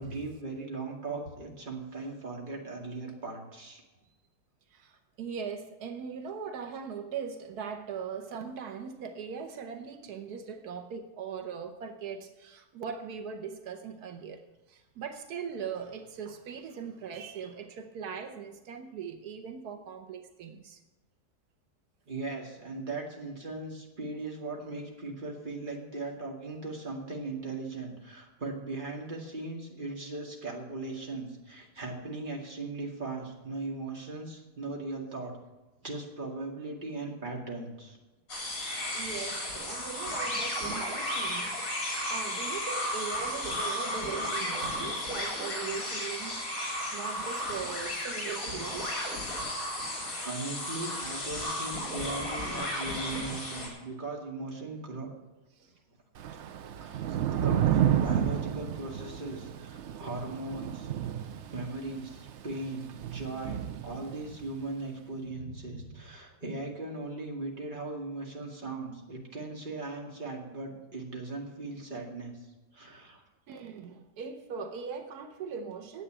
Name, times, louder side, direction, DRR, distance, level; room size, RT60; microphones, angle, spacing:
voice 1, 0.0-3.8 22.1-35.3 35.8-38.0 38.9-39.4 50.2-55.1 56.8-60.9 61.4-72.4 72.7-73.2, right 2 dB, 30° right, 2.3 m, -38 dB
voice 2, 4.7-14.4 14.7-20.8 38.9-41.6 42.1-49.0 55.6-55.7 59.9-60.0 65.4-66.0 73.5-76.0, right 6 dB, 90° right, 1.5 m, -40 dB
sound 1, 38.3-53.7, left 1 dB, 60° left, 3.7 m, -34 dB
Thunder / Rain, 56.2-64.5, right 10 dB, 60° right, 0.8 m, -31 dB
9.9 x 8.0 x 8.7 m
omnidirectional pair, 1.6 m